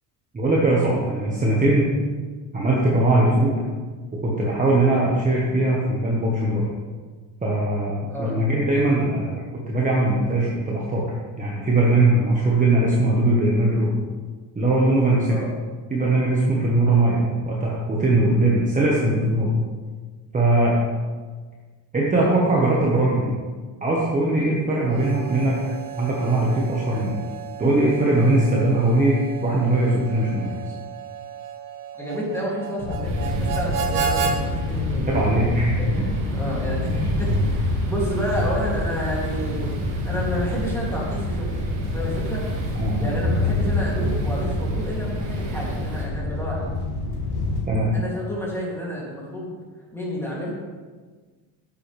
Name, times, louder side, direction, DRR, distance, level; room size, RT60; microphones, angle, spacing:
voice 1, 0.3-1.9 2.5-3.5 4.2-6.7 7.4-13.9 14.5-15.4 15.9-19.5 20.3-20.8 21.9-23.3 23.8-25.6 26.0-27.1 27.6-30.6 35.1-35.8 36.9-37.0 42.7-43.0 47.7-47.9, right 2 dB, 20° right, -4 dB, 1.4 m, -20 dB
Harmonica, 24.8-34.4, right 7 dB, 50° right, 1.3 m, -32 dB
voice 2, 31.9-35.1 35.7-36.1 36.3-36.9 37.2-39.8 40.0-41.5 41.9-42.4 43.0-46.7 47.9-49.6 49.9-50.5, equal, 5° left, -5 dB, 2.8 m, -30 dB
sound 1, 32.8-47.6, left 2 dB, 55° left, 2.0 m, -27 dB
sound 2, 33.0-46.1, right 3 dB, 80° right, 2.2 m, -33 dB
10.0 x 7.8 x 3.5 m, 1.4 s
cardioid pair, 130°, 43 cm